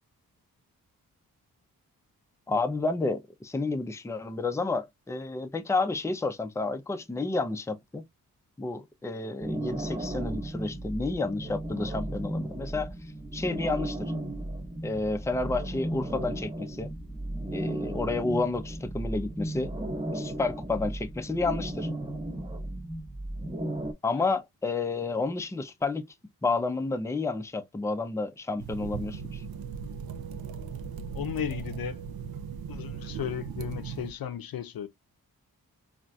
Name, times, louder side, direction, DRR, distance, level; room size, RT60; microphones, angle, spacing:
voice 1, 2.5-8.0 8.6-12.9 13.3-14.1 14.8-16.9 17.5-19.7 20.1-21.9 24.0-26.1 26.4-29.4, left 3 dB, 10° left, 0.5 m, -30 dB
sound 1, 9.4-23.9, right 1 dB, 15° right, 0.9 m, -35 dB
sound 2, 28.6-34.1, right 6 dB, 70° right, 0.5 m, -38 dB
voice 2, 31.1-32.0 32.7-34.9, left 10 dB, 70° left, 0.6 m, -35 dB
3.9 x 2.5 x 2.2 m
cardioid pair, 45°, 37 cm